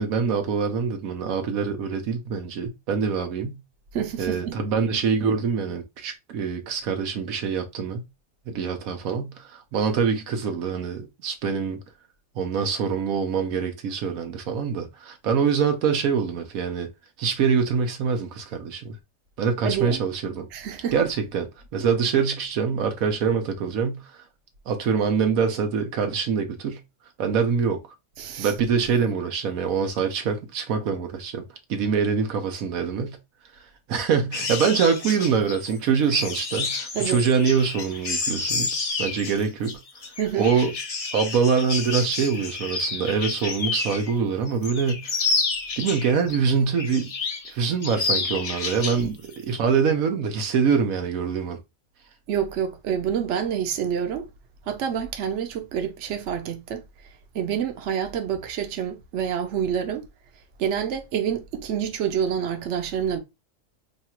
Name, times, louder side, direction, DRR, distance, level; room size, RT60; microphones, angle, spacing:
voice 1, 0.0-3.6 4.2-8.0 8.5-11.8 12.4-16.9 17.2-18.9 19.4-20.5 20.9-24.2 24.7-26.8 27.2-27.8 28.4-31.4 31.7-33.2 33.9-39.8 40.4-40.7 41.1-45.2 45.8-47.1 47.5-51.6, right 6 dB, 90° right, 1.2 m, -24 dB
voice 2, 3.9-4.6 19.6-20.0 20.5-20.9 28.2-28.5 36.9-37.2 40.2-40.5 52.3-54.3 54.7-56.8 57.3-60.1 60.6-63.2, right 8 dB, 65° right, 1.0 m, -27 dB
sound 1, 34.3-44.1 44.5-46.4 46.8-47.5 47.8-49.0 49.3-49.6, left 4 dB, 50° left, 0.4 m, -29 dB
3.0 x 2.4 x 4.2 m
omnidirectional pair, 1.4 m